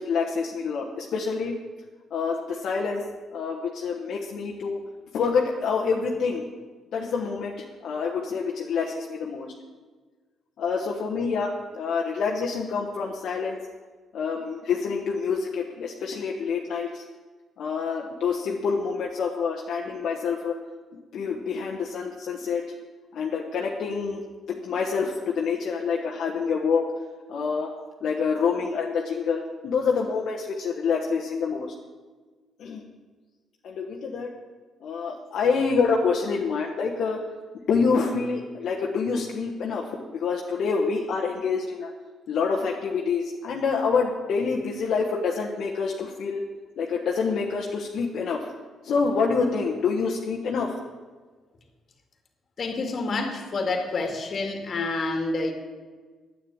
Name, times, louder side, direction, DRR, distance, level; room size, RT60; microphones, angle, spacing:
voice 1, 0.0-1.5 2.1-3.0 3.3-4.8 5.1-6.5 6.9-9.5 10.6-13.6 14.1-17.0 17.6-20.6 20.9-22.6 23.1-24.2 24.5-26.8 27.3-27.7 28.0-31.7 32.6-32.9 33.6-34.3 34.8-37.2 37.7-41.9 42.3-46.4 46.8-48.5 48.8-50.7, left 5 dB, 70° left, -1 dB, 1.3 m, -27 dB
voice 2, 52.6-55.5, left 3 dB, 45° left, 4 dB, 2.2 m, -28 dB
9.7 x 8.8 x 8.6 m, 1.4 s
cardioid pair, 90°, 0 cm